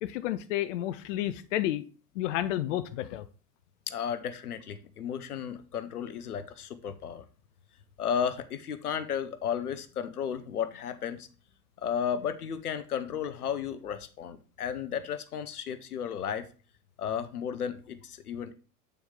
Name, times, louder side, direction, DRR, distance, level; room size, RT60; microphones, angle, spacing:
voice 1, 0.0-1.8 2.2-3.2, left 13 dB, 55° left, 0.6 m, -31 dB
voice 2, 3.9-7.3 8.0-11.3 11.8-16.5 17.0-18.5, left 8 dB, 80° left, 0.8 m, -33 dB
8.3 x 4.3 x 3.8 m
figure-of-eight pair, 85°, 45 cm